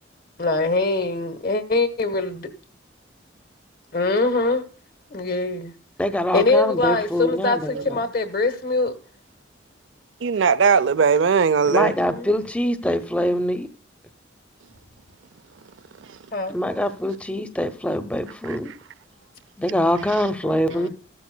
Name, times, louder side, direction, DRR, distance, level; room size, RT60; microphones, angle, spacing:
voice 1, 0.4-2.5 3.9-4.6 5.1-5.7 6.3-9.0 11.6-12.3 16.3-16.5 20.4-20.9, left 3 dB, 50° left, 1.2 m, -23 dB
voice 2, 6.0-7.8 11.7-13.7 16.5-18.7 19.6-20.9, equal, 5° left, 0.6 m, -24 dB
voice 3, 10.2-11.9 16.1-16.2 18.4-18.8, right 5 dB, 75° right, 0.5 m, -19 dB
15.0 x 12.5 x 2.2 m
head